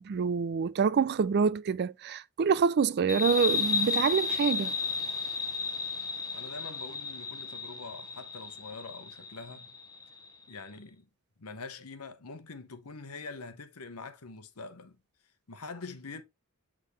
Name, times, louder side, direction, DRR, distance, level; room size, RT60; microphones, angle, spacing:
voice 1, 0.0-4.7, right 6 dB, 50° right, 0.4 m, -26 dB
sound 1, 3.1-10.3, left 4 dB, 15° left, 0.7 m, -33 dB
voice 2, 6.3-9.7 10.5-11.1 11.4-15.0 15.5-16.2, left 4 dB, 80° left, 1.0 m, -44 dB
8.3 x 3.7 x 3.3 m
head